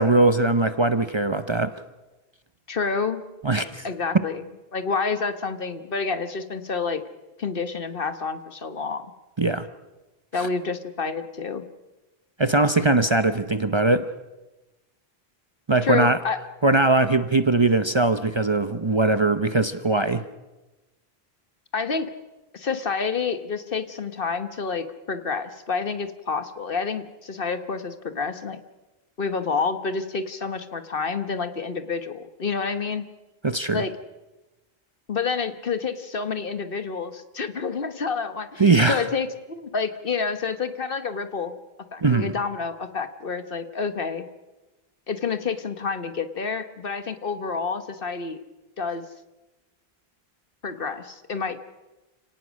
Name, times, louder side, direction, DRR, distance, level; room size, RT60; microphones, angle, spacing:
voice 1, 0.0-1.7 3.4-3.9 9.4-9.7 10.4-10.5 12.4-14.0 15.7-16.2 16.6-20.2 33.4-33.8 38.6-39.0 42.0-42.3, right 2 dB, 30° right, 10 dB, 0.7 m, -20 dB
voice 2, 2.7-3.2 3.8-4.4 4.7-7.0 7.4-9.1 10.3-11.6 15.8-16.4 21.7-22.1 22.5-28.6 29.2-33.0 33.7-33.9 35.1-41.6 41.9-44.3 45.1-48.4 48.8-49.1 50.6-51.6, left 5 dB, 60° left, 10 dB, 1.4 m, -28 dB
29.5 x 18.0 x 6.4 m, 1.1 s
omnidirectional pair, 1.0 m